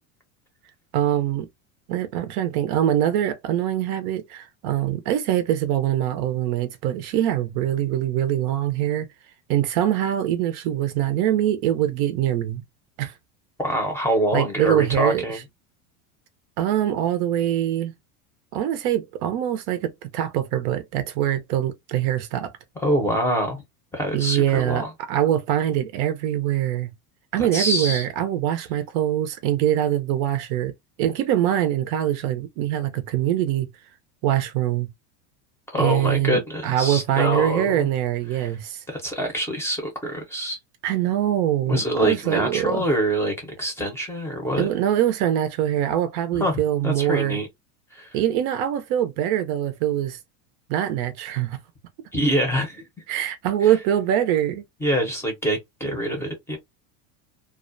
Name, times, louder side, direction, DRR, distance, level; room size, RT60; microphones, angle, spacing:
voice 1, 0.9-1.5 1.9-9.1 9.5-12.6 13.0-13.1 14.3-15.4 16.6-17.9 18.5-22.5 24.1-26.9 27.3-30.7 31.0-33.7 34.2-34.9 35.8-38.8 40.8-42.8 44.6-47.4 48.1-50.2 50.7-51.6 53.1-54.6, right 11 dB, 55° right, 0.5 m, -23 dB
voice 2, 13.6-15.4 22.8-23.6 23.9-24.9 27.5-28.0 35.7-37.9 38.3-38.5 38.9-40.6 41.7-44.7 46.4-47.5 47.9-48.2 52.1-52.8 53.6-53.7 54.8-56.6, equal, 5° left, 0.6 m, -25 dB
2.4 x 2.1 x 2.5 m
supercardioid pair, 135°, 43 cm